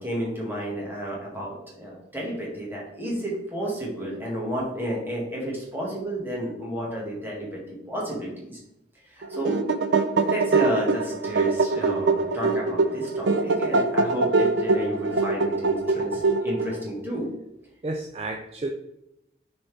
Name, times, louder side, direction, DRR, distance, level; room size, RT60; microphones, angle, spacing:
voice 1, 0.0-7.6 7.9-8.6 9.1-9.6 10.2-17.3, right 1 dB, 10° right, -4 dB, 1.8 m, -31 dB
sound 1, 9.2-16.8, right 3 dB, 85° right, 0.6 m, -23 dB
voice 2, 15.9-16.3 17.8-18.7, right 2 dB, 35° right, 3 dB, 0.4 m, -33 dB
7.2 x 4.3 x 3.4 m, 0.86 s
head